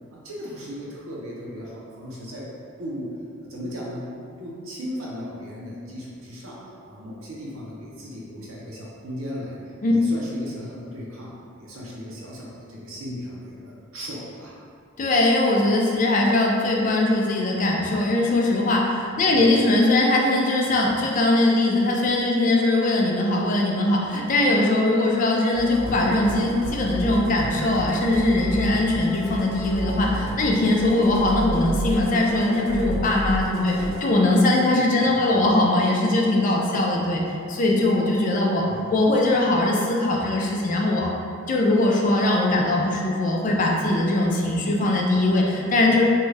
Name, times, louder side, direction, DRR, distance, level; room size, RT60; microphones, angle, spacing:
voice 1, 0.1-2.5 2.8-3.1 3.5-6.6 6.9-9.6 9.9-14.5 19.3-19.5 33.8-34.0 35.1-35.4 38.7-38.9, equal, 90° right, -5 dB, 0.7 m, -36 dB
voice 2, 15.0-37.2 37.5-38.6 38.9-41.1 41.5-46.0, left 2 dB, 40° left, -1 dB, 0.4 m, -21 dB
Musical instrument, 25.5-34.0, equal, 80° left, 0.7 m, -31 dB
2.6 x 2.3 x 3.2 m, 2.4 s
head